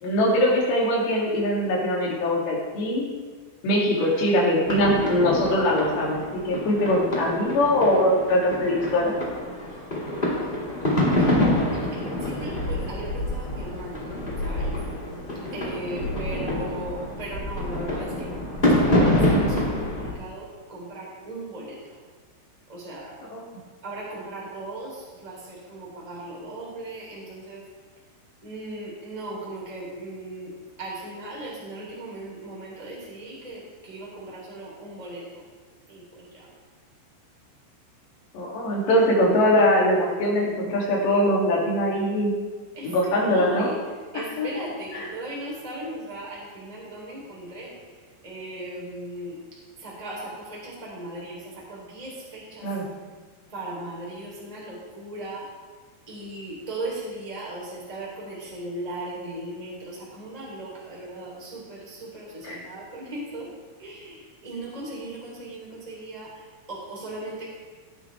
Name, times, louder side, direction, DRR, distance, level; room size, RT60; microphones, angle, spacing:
voice 1, 0.0-3.1 3.6-9.1 23.3-23.4 38.3-42.3 42.8-43.7 44.1-44.5 44.9-45.1 52.6-52.9 62.4-62.6, left 1 dB, 60° left, -4 dB, 4.9 m, -22 dB
sound 1, 4.6-20.1, left 1 dB, 30° left, 0.9 m, -26 dB
voice 2, 11.1-11.4 11.7-14.0 14.4-14.7 15.5-18.3 18.6-21.8 22.7-23.1 23.8-27.6 28.4-30.5 30.8-35.2 35.9-36.3 42.7-43.8 44.1-47.7 48.2-49.4 49.8-52.6 53.5-55.4 56.1-63.5 63.8-66.3 66.7-67.5, right 1 dB, 10° right, -5 dB, 2.9 m, -37 dB
19.0 x 9.1 x 3.6 m, 1.4 s
omnidirectional pair, 6.0 m